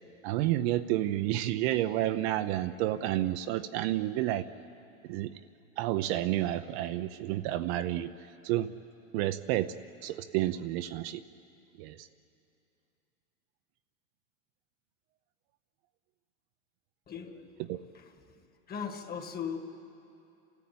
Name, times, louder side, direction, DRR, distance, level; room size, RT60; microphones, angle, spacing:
voice 1, 0.2-4.4 5.1-5.3 5.8-8.1 8.4-8.7 9.1-9.7 10.0-11.2 11.8-12.1 17.7-17.8, right 14 dB, 50° right, 10 dB, 0.7 m, -30 dB
voice 2, 17.1-18.4 18.7-19.6, left 7 dB, 20° left, 6 dB, 1.8 m, -39 dB
30.0 x 14.0 x 8.7 m, 2.7 s
hypercardioid pair, 125°, 41 cm